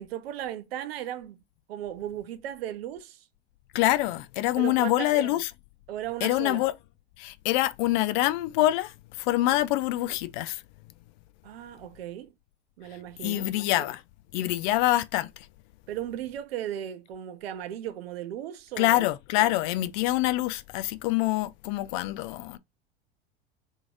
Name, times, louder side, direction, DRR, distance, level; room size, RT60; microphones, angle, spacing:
voice 1, 0.0-1.4 1.7-3.3 4.6-5.4 5.9-6.6 9.5-9.6 11.4-12.3 12.8-13.5 15.9-19.1, right 11 dB, 65° right, 0.6 m, -36 dB
voice 2, 3.7-5.5 6.2-6.7 7.2-10.6 13.2-14.0 14.3-15.5 18.8-22.6, left 16 dB, 50° left, 0.5 m, -25 dB
3.0 x 2.7 x 3.6 m
figure-of-eight pair, 85°, 32 cm